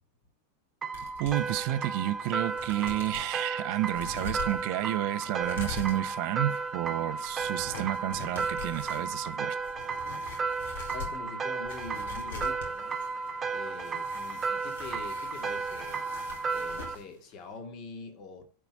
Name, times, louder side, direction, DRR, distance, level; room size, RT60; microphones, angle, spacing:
sound 1, 0.8-17.0, right 4 dB, 20° right, 1.0 m, -34 dB
sound 2, 0.9-1.6 2.1-2.2 2.5-3.3 3.9-17.0 17.3-17.4, left 5 dB, 60° left, 3.0 m, -44 dB
voice 1, 1.2-9.6, right 15 dB, 45° right, 0.9 m, -31 dB
voice 2, 10.9-12.9 13.5-16.0 16.5-18.4, left 4 dB, 35° left, 2.2 m, -44 dB
11.0 x 4.7 x 8.2 m
figure-of-eight pair, 90°, 0 cm